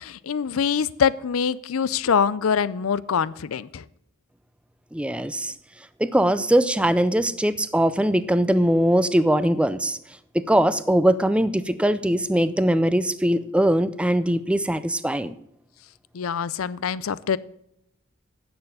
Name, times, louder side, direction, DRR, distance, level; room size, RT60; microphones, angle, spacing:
voice 1, 0.0-3.8 16.1-17.4, left 7 dB, 80° left, 19 dB, 0.5 m, -24 dB
voice 2, 4.9-5.5 6.0-10.0 10.3-15.3, right 1 dB, 5° right, 14 dB, 0.4 m, -21 dB
10.0 x 7.0 x 6.8 m, 0.75 s
head